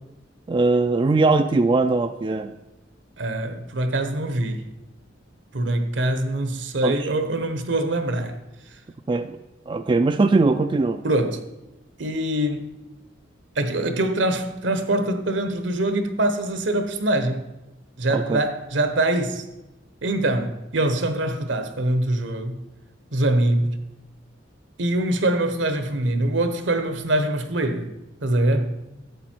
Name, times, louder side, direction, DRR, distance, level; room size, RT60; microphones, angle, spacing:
voice 1, 0.5-2.5 6.8-7.0 9.1-9.4 9.7-11.0 18.1-18.4, right 3 dB, 25° right, 0.3 m, -20 dB
voice 2, 3.2-4.7 5.5-8.4 11.0-11.4 12.0-12.7 13.6-17.4 18.0-19.4 20.0-22.6 23.1-23.8 24.8-27.9 28.2-28.7, right 1 dB, 75° right, 1.1 m, -23 dB
11.5 x 8.1 x 4.5 m
head